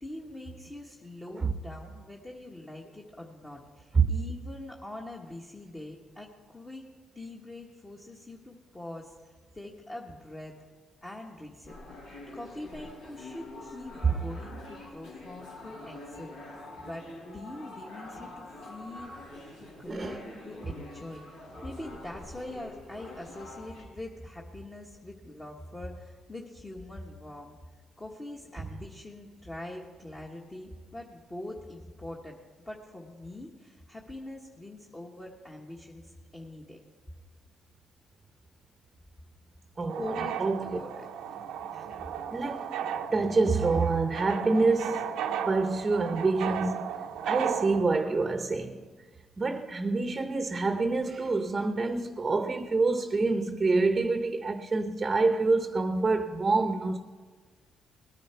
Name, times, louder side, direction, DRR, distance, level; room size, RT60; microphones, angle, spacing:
voice 1, 0.0-6.8 7.1-10.5 11.0-12.0 12.3-19.2 19.6-27.6 28.0-32.4 32.6-36.8 39.9-40.4 40.7-41.1, left 1 dB, 20° left, 1.4 m, -43 dB
sound 1, 11.7-23.8, left 2 dB, 85° left, 4.7 m, -46 dB
voice 2, 19.9-20.3 39.8-40.0 40.4-40.8 42.3-42.6 43.1-45.1 45.5-46.8 47.2-48.8 49.4-57.0, right 3 dB, 25° right, 0.8 m, -26 dB
sound 2, 39.9-47.8, right 8 dB, 90° right, 0.6 m, -35 dB
19.0 x 9.6 x 4.5 m
cardioid pair, 90°, 0 cm